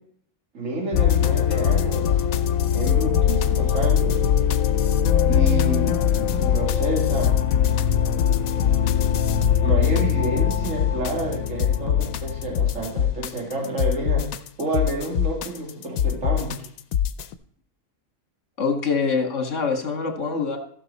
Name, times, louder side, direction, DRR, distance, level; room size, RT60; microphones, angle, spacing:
voice 1, 0.5-2.2 2.7-4.2 5.2-7.3 9.6-14.3 14.6-16.7, right 1 dB, 65° right, -1 dB, 2.7 m, -29 dB
sound 1, 0.9-17.3, left 9 dB, 85° left, 1.1 m, -21 dB
voice 2, 18.6-20.6, left 5 dB, 65° left, 4 dB, 2.0 m, -24 dB
15.0 x 6.4 x 4.2 m, 0.63 s
omnidirectional pair, 1.4 m